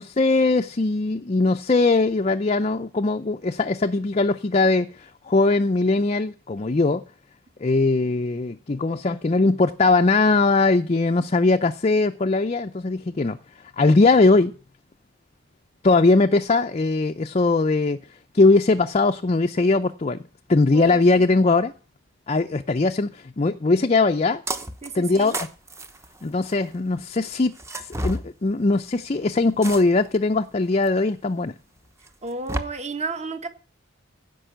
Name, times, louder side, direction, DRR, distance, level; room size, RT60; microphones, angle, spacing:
voice 1, 0.0-7.0 7.6-13.4 13.8-14.5 15.8-18.0 18.3-20.2 20.5-21.7 22.3-24.4 24.9-25.5 26.2-31.5, left 3 dB, 30° left, 0.5 m, -20 dB
voice 2, 20.7-21.3 24.8-25.3 32.2-33.5, right 3 dB, 30° right, 1.4 m, -32 dB
sound 1, 24.5-24.9 25.1-26.7 27.5-28.2 29.6-30.2 30.8-30.9 32.1-32.6, right 1 dB, 15° right, 0.9 m, -30 dB
16.0 x 5.4 x 7.9 m
head